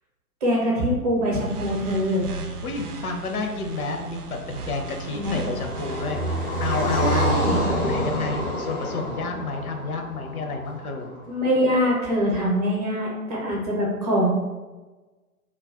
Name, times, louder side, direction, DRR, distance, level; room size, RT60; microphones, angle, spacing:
voice 1, 0.4-2.3 5.1-5.4 7.0-7.7 11.3-14.3, equal, 25° right, -3 dB, 0.6 m, -23 dB
sound 1, 1.3-7.4, right 4 dB, 85° right, 0.5 m, -37 dB
voice 2, 2.6-4.2 4.5-6.3 6.6-7.4 7.8-11.1, left 3 dB, 70° left, 3 dB, 0.6 m, -30 dB
Car passing by, 4.0-11.2, equal, 15° left, 0.4 m, -28 dB
2.3 x 2.2 x 3.4 m, 1.2 s
figure-of-eight pair, 120°, 45 cm